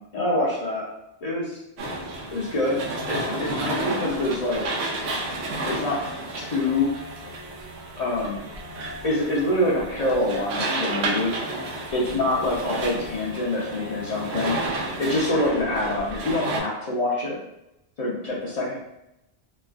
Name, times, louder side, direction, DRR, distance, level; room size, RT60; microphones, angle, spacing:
voice 1, 0.1-0.8 1.2-1.6 2.3-2.8 3.1-4.7 5.7-6.0 6.3-7.0 8.0-8.5 9.0-11.4 11.9-14.6 15.0-17.4 18.0-18.7, left 1 dB, 45° left, -7 dB, 0.6 m, -25 dB
sound 1, 1.8-16.6, right 2 dB, 80° right, 0.9 m, -31 dB
3.2 x 2.3 x 2.3 m, 0.87 s
omnidirectional pair, 1.1 m